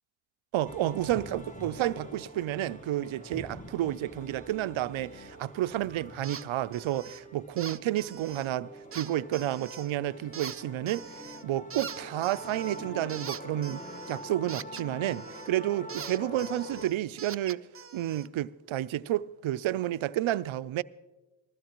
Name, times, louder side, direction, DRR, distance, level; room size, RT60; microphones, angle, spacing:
voice 1, 0.5-11.1 11.4-17.6 17.9-20.8, right 13 dB, 75° right, 0.6 m, -31 dB
sound 1, 0.6-16.9, equal, 15° left, 1.3 m, -45 dB
sound 2, 6.2-6.5 6.7-7.2 7.6-8.5 8.9-9.9 10.3-11.4 11.7-15.5 15.9-18.3, right 6 dB, 30° right, 0.6 m, -43 dB
20.5 x 15.0 x 3.0 m
cardioid pair, 45°, 49 cm